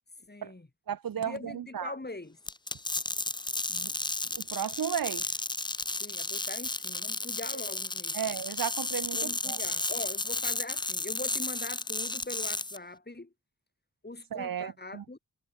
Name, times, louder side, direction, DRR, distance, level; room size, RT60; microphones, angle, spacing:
voice 1, 0.3-0.7 1.1-2.4 6.0-8.2 9.1-13.3 14.0-15.2, left 2 dB, 30° left, 3.9 m, -42 dB
voice 2, 0.9-1.9 3.7-3.9 4.3-5.3 7.5-7.6 8.1-9.6 14.3-15.0, right 8 dB, 75° right, 0.7 m, -34 dB
sound 1, 2.5-12.8, left 2 dB, 15° left, 0.5 m, -33 dB
wide cardioid pair, 65°, 34 cm